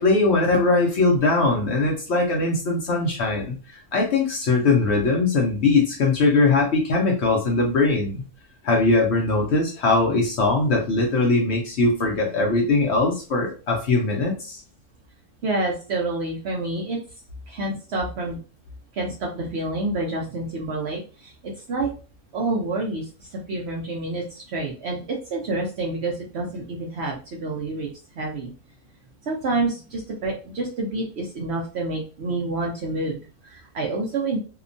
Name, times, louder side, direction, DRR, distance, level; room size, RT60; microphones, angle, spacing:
voice 1, 0.0-8.2 8.6-14.6, left 3 dB, 60° left, 0 dB, 0.7 m, -21 dB
voice 2, 15.4-17.0 17.5-18.4 18.9-21.9 22.3-27.9 28.2-28.5 29.2-34.4, right 2 dB, 65° right, -2 dB, 0.7 m, -28 dB
2.8 x 2.1 x 2.5 m, 0.36 s
omnidirectional pair, 1.5 m